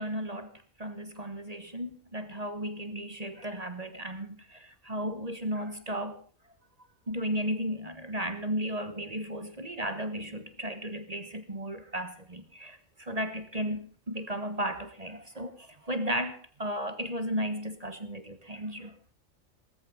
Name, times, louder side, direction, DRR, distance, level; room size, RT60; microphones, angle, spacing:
voice 1, 0.0-6.2 7.1-19.0, equal, 30° right, 1.4 m, -35 dB
17.5 x 14.5 x 5.1 m
omnidirectional pair, 1.4 m